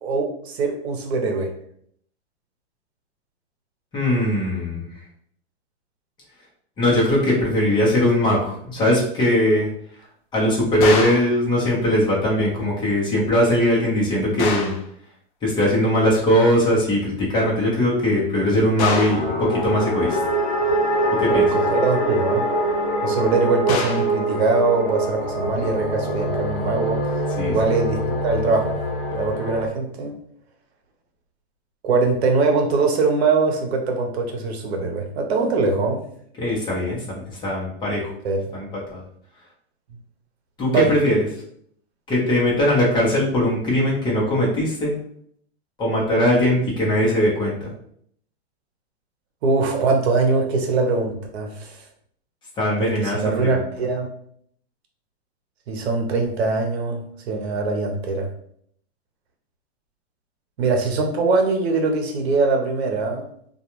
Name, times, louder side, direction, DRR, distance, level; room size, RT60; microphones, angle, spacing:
voice 1, 0.0-1.5 21.3-22.4 23.0-27.0 27.5-28.7 29.1-30.1 31.8-36.0 38.2-38.5 40.7-40.9 49.4-51.8 52.8-54.1 55.7-57.0 57.3-58.3 60.6-63.2, right 3 dB, 75° right, 2 dB, 0.8 m, -22 dB
voice 2, 3.9-4.9 6.8-9.7 10.3-14.7 15.4-20.2 21.2-21.5 27.4-27.5 36.4-38.1 38.5-39.0 40.6-41.3 42.1-45.0 45.8-47.7 52.6-53.6, left 1 dB, 15° left, -5 dB, 0.8 m, -20 dB
sound 1, 10.8-11.4 14.4-14.9 18.8-19.3 23.7-24.2, left 4 dB, 35° left, 0.4 m, -26 dB
sound 2, 18.9-29.7, right 1 dB, 55° left, 1.0 m, -24 dB
2.4 x 2.3 x 2.9 m, 0.65 s
hypercardioid pair, 145°, 32 cm